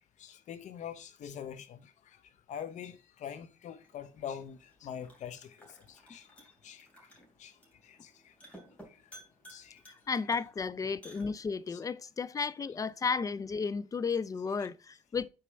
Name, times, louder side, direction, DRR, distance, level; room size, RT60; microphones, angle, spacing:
voice 1, 0.2-2.2 2.5-6.9 7.4-7.6 7.8-8.3 9.5-9.8 11.7-11.8, left 8 dB, 60° left, 0.9 m, -44 dB
sound 1, 3.8-11.8, right 1 dB, 10° left, 2.8 m, -57 dB
voice 2, 10.1-15.3, left 5 dB, 25° left, 0.4 m, -33 dB
5.2 x 4.3 x 5.4 m
cardioid pair, 95°, 14 cm